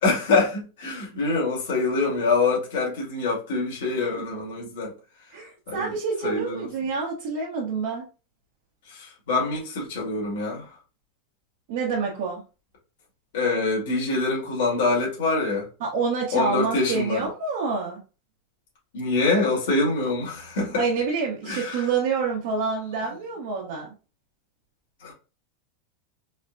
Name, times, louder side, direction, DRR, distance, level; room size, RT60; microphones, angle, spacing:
voice 1, 0.0-4.9 5.7-5.9 6.2-6.7 8.9-10.7 13.3-15.7 16.3-17.3 18.9-20.8 21.5-21.9 25.0-25.1, left 3 dB, 70° left, 1.9 m, -25 dB
voice 2, 5.3-8.0 11.7-12.4 15.8-18.0 20.8-23.9, right 5 dB, 50° right, 1.0 m, -27 dB
4.1 x 2.2 x 2.5 m
supercardioid pair, 175°, 0 cm